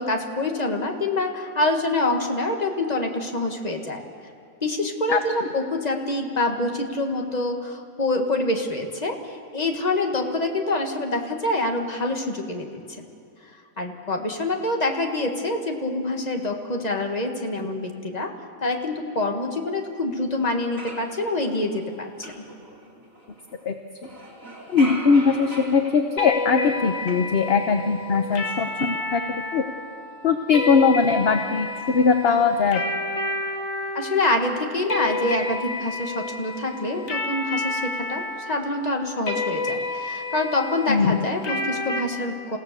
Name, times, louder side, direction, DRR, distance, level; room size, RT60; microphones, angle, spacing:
voice 1, 0.0-4.0 4.6-13.1 13.8-18.3 18.6-22.4 33.9-42.6, left 2 dB, 30° left, 3 dB, 1.8 m, -26 dB
sound 1, 20.1-20.2 20.5-23.6 24.0-27.9 28.2-28.9, right 1 dB, 75° right, 3.4 m, -41 dB
voice 2, 24.7-29.6 30.2-32.8 40.9-41.2, left 5 dB, 50° left, 6 dB, 1.1 m, -20 dB
sound 2, 26.2-42.0, left 2 dB, 70° left, 1.8 m, -30 dB
28.5 x 16.5 x 6.9 m, 2.6 s
omnidirectional pair, 1.4 m